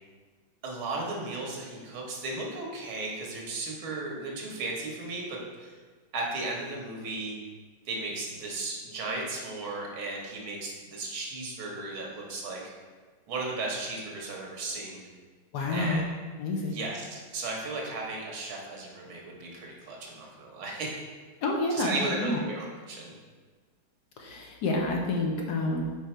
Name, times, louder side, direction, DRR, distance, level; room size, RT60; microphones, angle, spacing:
voice 1, 0.6-5.7 6.1-7.4 7.9-12.6 13.3-15.0 15.7-16.0 16.7-21.0 21.7-23.1, right 2 dB, 90° right, -1 dB, 2.1 m, -35 dB
voice 2, 15.5-16.0 16.4-16.8 21.4-22.4 24.2-25.8, left 2 dB, 65° left, 0 dB, 1.2 m, -29 dB
5.5 x 5.0 x 4.4 m, 1.4 s
omnidirectional pair, 2.2 m